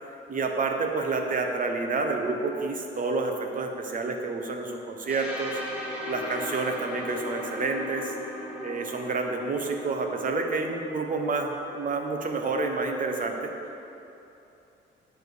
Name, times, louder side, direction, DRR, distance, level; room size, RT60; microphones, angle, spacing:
voice 1, 0.3-5.6 6.0-8.1 8.6-13.5, right 3 dB, 45° right, 3 dB, 1.0 m, -29 dB
sound 1, 5.1-12.9, left 1 dB, 5° right, 1.5 m, -38 dB
8.7 x 4.4 x 6.8 m, 2.9 s
cardioid pair, 90°, 20 cm